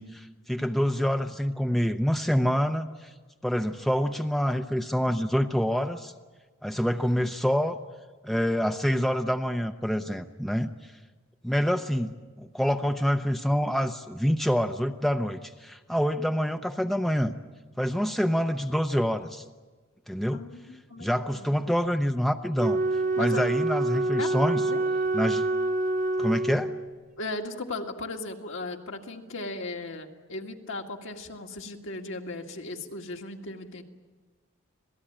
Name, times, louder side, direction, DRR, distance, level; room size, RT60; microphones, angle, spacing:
voice 1, 0.0-3.1 3.4-6.1 6.6-7.8 8.2-10.9 11.4-17.3 17.8-19.4 20.1-20.4 21.0-22.8 23.2-24.6 25.1-25.4 26.2-26.7, equal, ahead, 6 dB, 0.6 m, -26 dB
voice 2, 20.3-21.6 23.2-23.4 24.2-24.3 24.5-24.9 27.2-33.8, left 2 dB, 60° left, 2 dB, 2.1 m, -37 dB
Wind instrument woodwind instrument, 22.5-27.0, right 2 dB, 35° right, 0.7 m, -27 dB
26.5 x 18.0 x 8.8 m, 1.4 s
head